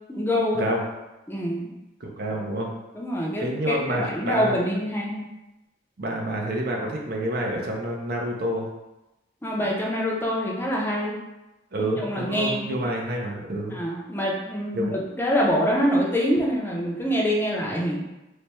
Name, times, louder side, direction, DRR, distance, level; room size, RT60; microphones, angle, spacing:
voice 1, 0.1-0.6 1.3-1.7 2.9-5.2 9.4-11.1 11.8-12.8 13.7-18.0, equal, 10° left, -3 dB, 0.5 m, -25 dB
voice 2, 2.2-2.7 3.4-4.6 6.0-8.7 11.7-13.8 14.7-15.0, right 1 dB, 55° right, 0 dB, 0.6 m, -28 dB
3.2 x 2.2 x 4.2 m, 0.99 s
head